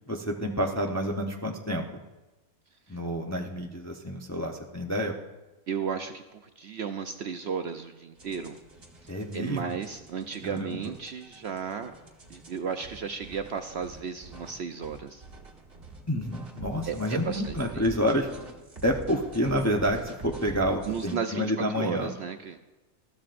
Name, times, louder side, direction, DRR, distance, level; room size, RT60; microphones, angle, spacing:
voice 1, 0.1-1.8 2.9-5.1 9.1-9.8 10.4-10.8 16.1-18.3 18.8-22.1, equal, 15° left, 2 dB, 0.6 m, -29 dB
voice 2, 5.7-8.6 9.0-11.9 12.3-15.2 16.8-17.8 20.9-21.4 21.7-22.6, right 6 dB, 60° right, 7 dB, 0.7 m, -34 dB
sound 1, 8.2-21.2, right 3 dB, 40° right, 1.7 m, -45 dB
20.5 x 14.0 x 2.5 m, 1.1 s
omnidirectional pair, 1.5 m